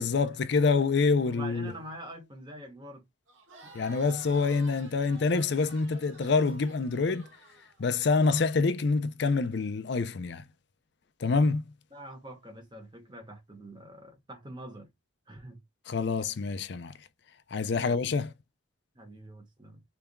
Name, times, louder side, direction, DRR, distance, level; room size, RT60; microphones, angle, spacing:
voice 1, 0.0-1.7 3.7-7.3 7.8-10.4 11.2-11.6 15.9-16.9 17.5-18.3, left 4 dB, 55° left, 0.5 m, -26 dB
voice 2, 1.2-3.1 3.6-3.7 11.9-14.9 15.3-15.6 17.7-18.0 18.9-19.8, right 1 dB, 20° right, 1.3 m, -45 dB
Crowd, 3.3-8.2, right 2 dB, 75° right, 1.5 m, -51 dB
4.0 x 3.5 x 2.2 m
head